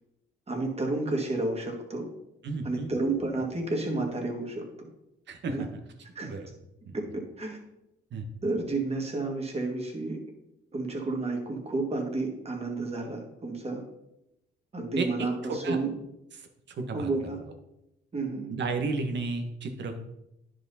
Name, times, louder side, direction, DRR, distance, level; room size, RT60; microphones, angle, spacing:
voice 1, 0.5-2.1 2.6-4.6 5.5-5.6 6.2-6.3 6.9-7.6 8.4-10.2 10.7-13.8 14.7-15.9 16.9-17.4 18.1-18.5, right 2 dB, 30° right, 1 dB, 2.2 m, -31 dB
voice 2, 2.4-2.9 5.3-5.7 6.3-6.5 6.8-6.9 8.1-8.2 15.0-15.1 15.5-15.8 16.8-17.1 18.5-20.0, right 3 dB, 65° right, 6 dB, 1.4 m, -32 dB
10.5 x 4.9 x 4.2 m, 0.89 s
cardioid pair, 90°, 20 cm